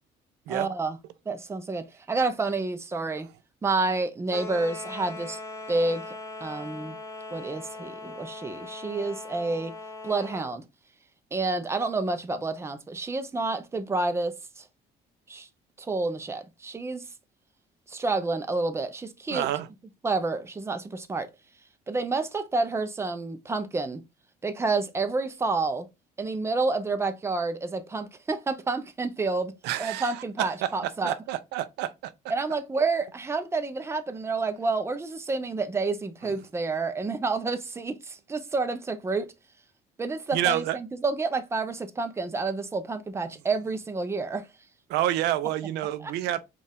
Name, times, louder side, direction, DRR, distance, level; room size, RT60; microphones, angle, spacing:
voice 1, 0.5-1.0 1.3-3.3 3.6-5.4 5.7-6.2 6.4-7.0 7.3-9.7 10.0-10.6 11.3-14.7 15.3-15.5 15.8-17.1 17.9-19.5 20.0-21.3 21.9-24.0 24.4-25.9 26.2-29.5 29.8-31.1 32.3-39.3 40.0-44.5 46.0-46.1, right 3 dB, 15° right, 0.6 m, -29 dB
sound 1, 4.3-10.5, left 3 dB, 15° left, 0.8 m, -40 dB
voice 2, 19.3-19.7 29.6-32.1 40.3-40.8 44.9-46.4, right 13 dB, 85° right, 0.5 m, -28 dB
4.2 x 2.4 x 3.5 m
cardioid pair, 110°, 17 cm